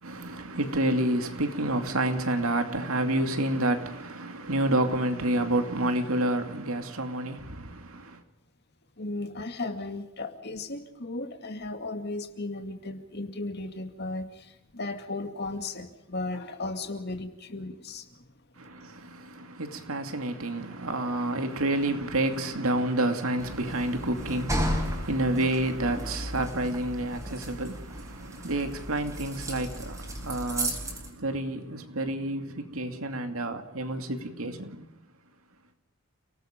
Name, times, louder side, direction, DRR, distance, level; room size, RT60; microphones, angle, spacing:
voice 1, 0.0-8.2 18.6-34.8, right 1 dB, 70° right, 2.6 m, -29 dB
voice 2, 9.0-18.3 21.0-21.1, left 2 dB, 50° left, 2.3 m, -36 dB
sound 1, 23.4-31.1, equal, 15° right, 4.7 m, -34 dB
30.0 x 19.0 x 5.2 m
head